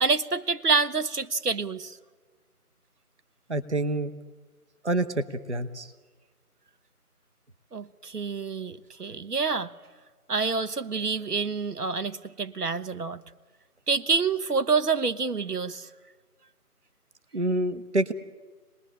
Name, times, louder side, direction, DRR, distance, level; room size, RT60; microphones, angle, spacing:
voice 1, 0.0-2.0 7.7-9.7 10.3-13.2 13.9-15.9, right 4 dB, 75° right, 1.2 m, -27 dB
voice 2, 3.5-4.1 4.8-5.1 5.5-5.9 17.3-18.1, right 2 dB, 45° right, 1.1 m, -26 dB
27.0 x 20.0 x 9.9 m
figure-of-eight pair, 175°, 46 cm